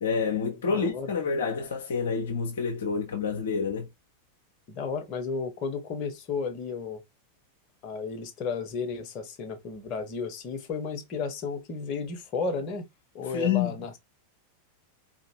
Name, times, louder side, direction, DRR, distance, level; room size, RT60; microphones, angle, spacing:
voice 1, 0.0-3.9 13.3-13.8, left 6 dB, 60° left, 0.8 m, -28 dB
voice 2, 0.6-1.1 4.7-7.0 7.8-12.9 13.1-14.0, left 5 dB, 35° left, 1.2 m, -33 dB
4.2 x 2.8 x 2.9 m
figure-of-eight pair, 90°, 0 cm